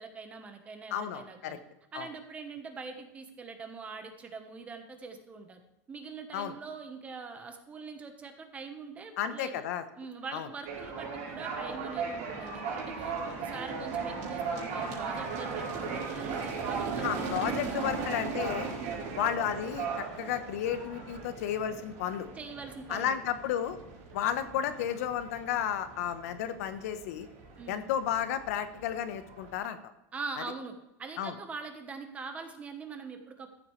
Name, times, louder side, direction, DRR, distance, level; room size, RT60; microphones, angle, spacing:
voice 1, 0.0-1.6 1.9-5.6 5.9-9.6 10.0-17.8 18.8-19.2 22.3-23.2 27.6-27.9 30.1-30.7 31.0-33.5, right 4 dB, 15° right, 6 dB, 1.1 m, -43 dB
voice 2, 0.9-1.6 1.9-2.1 6.3-6.5 9.2-9.8 10.3-10.5 17.0-18.7 19.2-22.3 22.9-23.8 24.1-27.3 27.7-29.8 31.2-31.4, left 9 dB, 75° left, 10 dB, 1.0 m, -32 dB
sound 1, 10.6-29.6, right 5 dB, 55° right, 4.1 m, -37 dB
14.0 x 7.9 x 3.2 m, 0.94 s
supercardioid pair, 160°, 8 cm